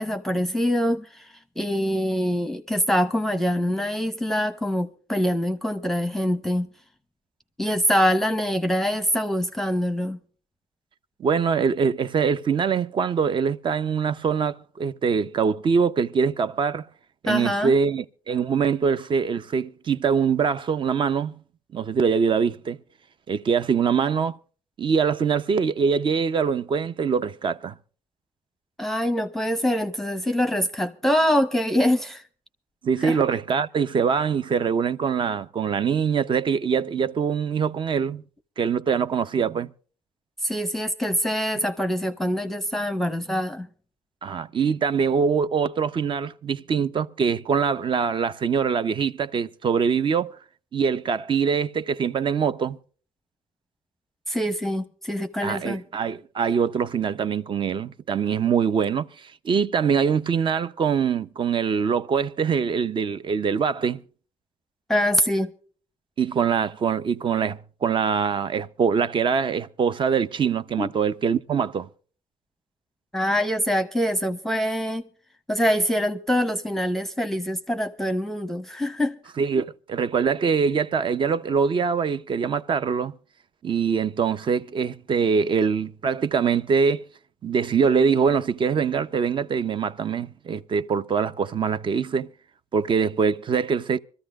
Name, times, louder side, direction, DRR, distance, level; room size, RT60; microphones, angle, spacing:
voice 1, 0.0-6.7 7.6-10.2 17.3-17.7 28.8-32.2 33.0-33.2 40.4-43.7 54.3-55.8 64.9-65.5 70.8-70.9 73.1-75.1 75.5-79.1, equal, ahead, 0.9 m, -24 dB
voice 2, 11.2-16.9 17.2-21.3 21.7-22.8 23.3-24.4 24.8-27.7 32.8-38.2 38.6-39.7 44.2-50.4 50.7-52.8 55.4-64.0 66.2-71.9 79.4-83.1 83.6-87.0 87.4-92.3 92.7-94.0, right 6 dB, 40° right, 0.7 m, -23 dB
25.0 x 14.0 x 2.4 m
cardioid pair, 105°, 13 cm